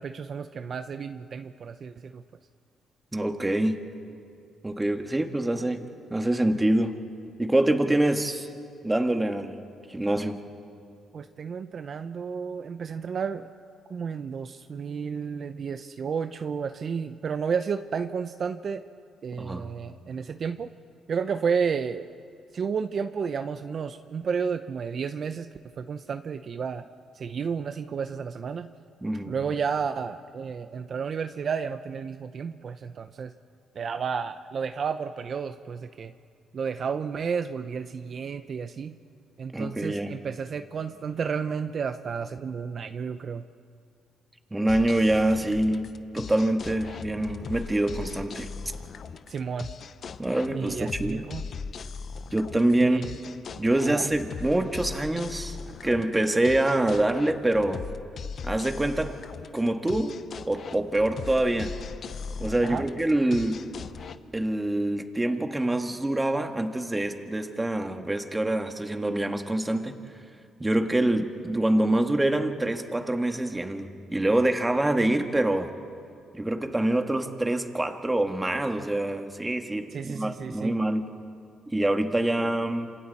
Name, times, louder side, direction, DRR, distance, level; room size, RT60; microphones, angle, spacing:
voice 1, 0.0-2.2 11.1-13.5 13.9-18.8 19.2-20.7 21.1-22.1 22.5-25.5 25.8-26.8 27.1-28.7 29.3-33.3 33.8-36.1 36.5-39.0 39.4-43.4 49.3-49.7 50.5-51.4 52.8-53.1 53.9-54.1 62.6-62.8 79.9-80.7, right 6 dB, 55° right, 9 dB, 0.7 m, -31 dB
voice 2, 3.1-3.8 4.6-7.0 7.4-8.5 8.8-9.6 9.9-10.4 19.4-19.7 29.0-29.4 39.5-40.2 44.5-48.5 50.2-51.2 52.3-53.0 53.6-55.6 55.8-57.8 58.4-59.2 59.5-60.2 60.5-61.8 62.4-63.7 64.3-69.9 70.6-75.7 76.3-81.0 81.7-82.9, right 1 dB, 15° right, 5 dB, 1.9 m, -25 dB
sound 1, 44.7-64.2, left 5 dB, 55° left, 0.9 m, -39 dB
27.5 x 27.5 x 4.3 m, 2.3 s
supercardioid pair, 70°, 0 cm